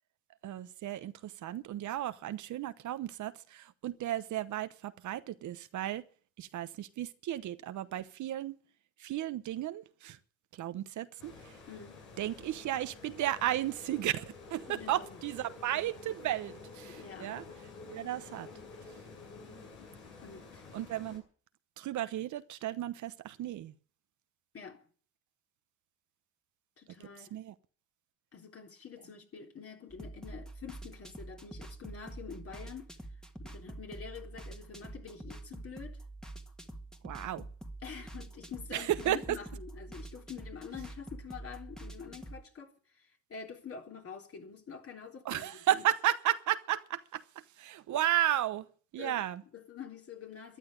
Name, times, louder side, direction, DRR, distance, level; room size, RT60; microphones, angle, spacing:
voice 1, 0.4-6.1 6.4-8.6 9.0-10.2 10.5-11.5 12.2-14.2 14.5-17.5 17.9-18.5 20.7-21.2 21.8-23.7 27.0-27.5 37.0-37.4 38.7-39.4 45.2-48.7 48.9-49.4, right 12 dB, 75° right, 1.0 m, -34 dB
sound 1, 11.2-21.2, left 3 dB, 85° left, 7.7 m, -50 dB
voice 2, 11.7-12.0 14.7-15.1 17.0-17.3 20.2-20.6 24.5-24.8 26.8-27.3 28.3-32.9 33.4-36.0 37.8-42.7 43.3-45.8 49.0-49.2 49.5-50.6, left 6 dB, 50° left, 3.7 m, -46 dB
sound 2, 29.9-42.4, right 2 dB, ahead, 1.8 m, -46 dB
13.0 x 11.0 x 8.9 m
cardioid pair, 90°, 30 cm